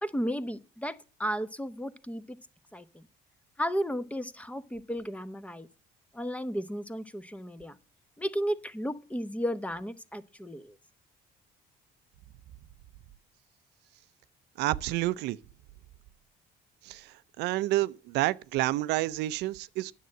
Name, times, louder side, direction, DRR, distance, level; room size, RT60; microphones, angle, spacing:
voice 1, 0.0-2.4 2.7-3.1 3.6-5.7 6.1-7.8 8.2-10.8, equal, 10° left, 0.9 m, -34 dB
voice 2, 14.6-15.4 16.8-19.9, right 17 dB, 85° right, 0.5 m, -29 dB
9.4 x 7.5 x 7.6 m
cardioid pair, 110°, 17 cm